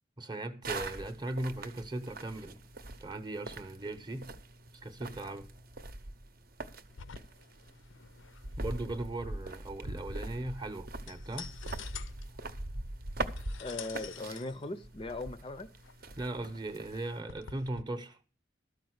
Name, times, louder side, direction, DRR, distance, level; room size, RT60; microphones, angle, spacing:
voice 1, 0.2-2.6 3.0-4.3 4.8-5.5 8.6-11.6 16.2-18.2, right 1 dB, 20° right, 0.9 m, -38 dB
sound 1, 0.6-17.2, right 2 dB, 45° right, 0.8 m, -43 dB
sound 2, 6.9-17.8, left 8 dB, 75° left, 0.6 m, -50 dB
voice 2, 13.6-15.7, left 2 dB, 25° left, 0.5 m, -39 dB
13.0 x 5.2 x 7.9 m
head